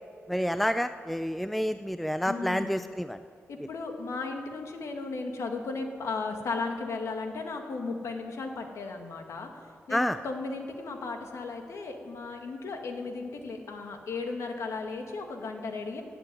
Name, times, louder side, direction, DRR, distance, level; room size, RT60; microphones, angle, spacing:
voice 1, 0.3-3.2 9.9-10.2, equal, ahead, 10 dB, 0.4 m, -29 dB
voice 2, 2.2-2.9 3.5-9.5 9.9-16.0, left 3 dB, 85° left, 4 dB, 1.9 m, -35 dB
15.5 x 9.0 x 9.6 m, 2.2 s
wide cardioid pair, 135°, 5 cm